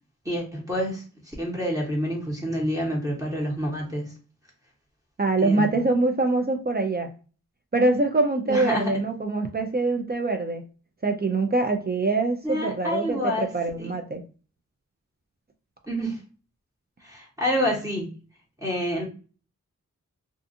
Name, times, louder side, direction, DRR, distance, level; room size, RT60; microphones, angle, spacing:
voice 1, 0.2-1.0 1.4-4.1 5.4-5.8 8.5-9.0 12.4-13.5 13.8-13.9 15.9-16.2 17.0-18.1 18.6-19.0, equal, 10° right, -4 dB, 1.0 m, -28 dB
voice 2, 5.2-7.1 7.7-10.6 11.0-14.2, right 3 dB, 30° right, 4 dB, 0.4 m, -24 dB
2.5 x 2.4 x 2.6 m, 0.36 s
wide cardioid pair, 75°, 31 cm